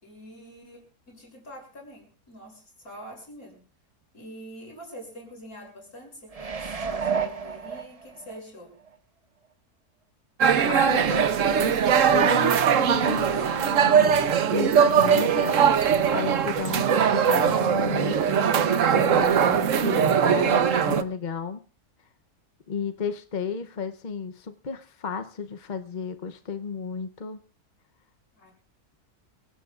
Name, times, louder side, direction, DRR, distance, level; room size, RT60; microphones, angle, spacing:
voice 1, 0.0-3.7 4.1-8.7 28.3-28.5, equal, 70° left, 1 dB, 7.5 m, -45 dB
sound 1, 6.3-8.4 8.9-9.0, right 6 dB, 30° right, 0.8 m, -31 dB
sound 2, 10.4-21.0, right 8 dB, 60° right, 1.2 m, -21 dB
voice 2, 10.7-11.8 12.1-15.6 16.1-21.6 22.7-27.4, left 5 dB, 40° left, 8 dB, 0.7 m, -33 dB
27.0 x 17.5 x 2.4 m, 0.37 s
omnidirectional pair, 1.6 m